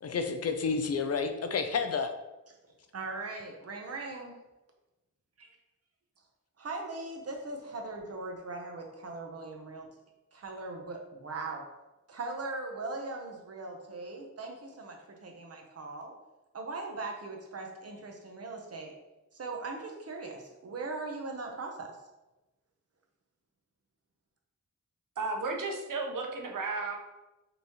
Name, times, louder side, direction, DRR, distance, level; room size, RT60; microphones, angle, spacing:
voice 1, 0.0-2.1, left 5 dB, 50° left, 7 dB, 0.4 m, -30 dB
voice 2, 2.9-4.4 5.4-5.5 6.6-9.9 10.3-11.6 12.1-16.1 16.5-18.9 19.3-22.0, right 3 dB, 50° right, 2 dB, 0.7 m, -40 dB
voice 3, 25.2-27.0, right 3 dB, 85° right, 2 dB, 0.7 m, -33 dB
5.3 x 2.8 x 2.9 m, 1.0 s
wide cardioid pair, 135°, 31 cm